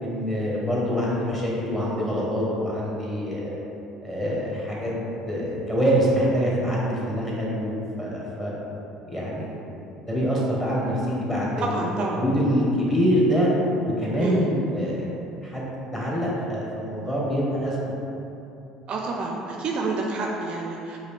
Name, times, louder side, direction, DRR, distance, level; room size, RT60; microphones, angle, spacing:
voice 1, 0.0-3.6 4.0-4.9 5.3-8.5 9.1-9.6 10.0-13.5 14.0-15.1 15.4-18.0, equal, 10° left, -6 dB, 1.4 m, -25 dB
voice 2, 11.6-12.2 14.2-14.5 18.9-21.0, right 3 dB, 50° right, 0 dB, 0.4 m, -28 dB
4.8 x 2.7 x 3.4 m, 2.9 s
hypercardioid pair, 65°, 2 cm